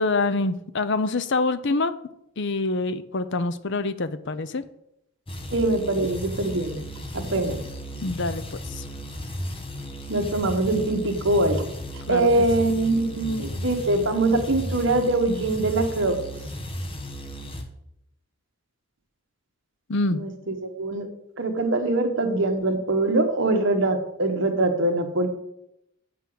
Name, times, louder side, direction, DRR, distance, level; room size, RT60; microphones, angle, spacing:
voice 1, 0.0-1.9 2.4-4.6 7.4-7.6 8.0-8.8 12.1-12.4 19.9-20.2, left 3 dB, 55° left, 13 dB, 0.6 m, -26 dB
sound 1, 5.3-17.6, equal, 25° left, 1.2 m, -35 dB
voice 2, 5.5-6.8 7.1-7.6 10.1-11.7 12.1-16.2 20.1-21.1 21.4-25.3, right 2 dB, 55° right, 5 dB, 1.3 m, -23 dB
7.8 x 5.8 x 7.8 m, 0.80 s
head